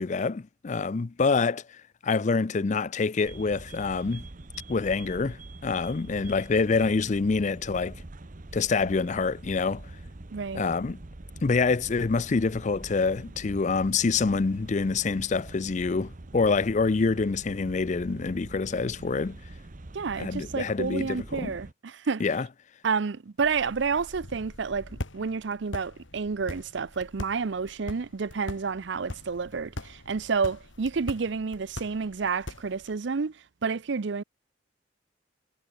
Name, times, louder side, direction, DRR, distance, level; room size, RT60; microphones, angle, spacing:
voice 1, 0.0-4.3 4.7-8.0 8.5-9.9 10.5-11.0 11.4-19.4 20.2-21.5 22.2-22.5, left 4 dB, 40° left, 0.4 m, -26 dB
sound 1, 3.2-21.7, right 2 dB, 40° right, 1.0 m, -44 dB
voice 2, 10.3-10.6 19.9-22.2 22.8-34.2, right 5 dB, 60° right, 0.5 m, -30 dB
sound 2, 23.4-33.0, left 1 dB, 75° left, 2.8 m, -42 dB
head